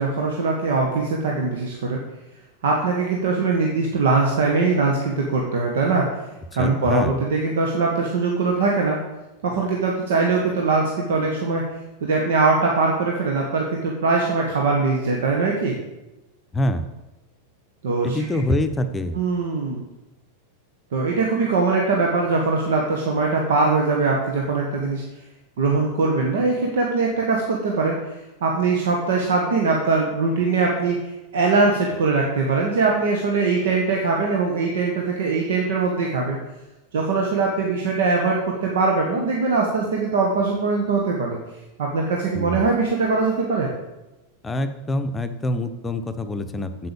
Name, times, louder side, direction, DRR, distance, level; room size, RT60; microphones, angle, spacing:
voice 1, 0.0-2.0 2.6-6.1 6.5-9.0 9.4-11.6 12.0-15.7 17.8-18.2 19.1-19.8 20.9-25.0 25.6-28.0 28.4-36.4 36.9-41.4 41.8-43.7, right 3 dB, 60° right, 0 dB, 1.5 m, -21 dB
voice 2, 6.6-7.2 16.5-16.8 18.0-19.2 42.3-42.7 44.4-46.9, left 1 dB, 15° left, 8 dB, 0.9 m, -25 dB
7.8 x 7.6 x 7.1 m, 1.0 s
figure-of-eight pair, 90°, 0 cm